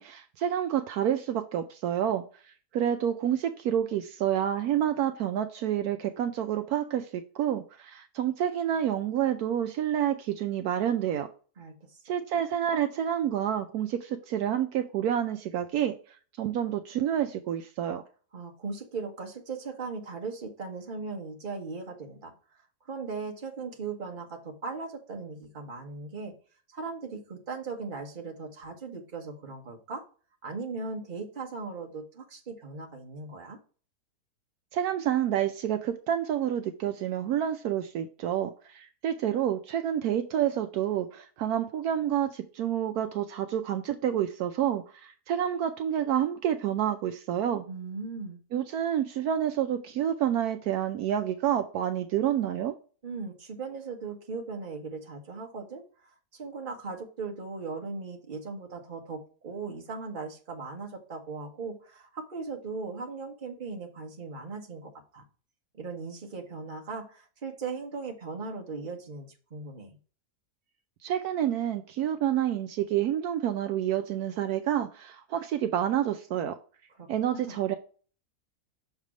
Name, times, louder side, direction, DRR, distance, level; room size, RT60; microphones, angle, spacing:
voice 1, 0.0-11.3 12.1-18.0 34.7-47.6 48.5-52.7 71.0-76.6 77.1-77.8, right 10 dB, 75° right, 7 dB, 1.0 m, -29 dB
voice 2, 11.6-12.0 18.3-22.3 22.9-26.3 26.7-30.0 30.4-33.6 47.7-48.4 53.0-55.8 56.3-65.2 65.7-69.9 77.0-77.6, right 4 dB, 35° right, 1 dB, 1.3 m, -38 dB
6.6 x 3.4 x 6.1 m, 0.39 s
omnidirectional pair, 1.7 m